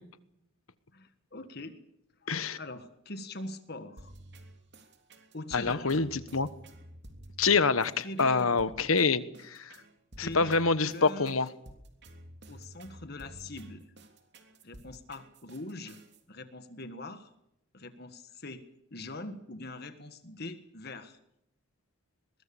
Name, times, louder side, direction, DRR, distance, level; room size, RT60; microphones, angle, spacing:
voice 1, 0.9-1.8 2.3-4.1 5.3-6.0 8.0-8.6 9.0-9.1 10.2-11.4 12.5-13.9 14.6-16.0 16.3-17.3 17.7-18.6 18.9-21.2, left 2 dB, 50° left, 9 dB, 1.6 m, -43 dB
voice 2, 2.3-2.6 5.5-6.5 7.4-9.2 9.5-9.8 10.2-11.5, left 4 dB, 80° left, 15 dB, 1.3 m, -26 dB
sound 1, 4.0-16.2, right 1 dB, 50° right, 3.3 m, -51 dB
22.5 x 22.0 x 7.1 m, 0.80 s
head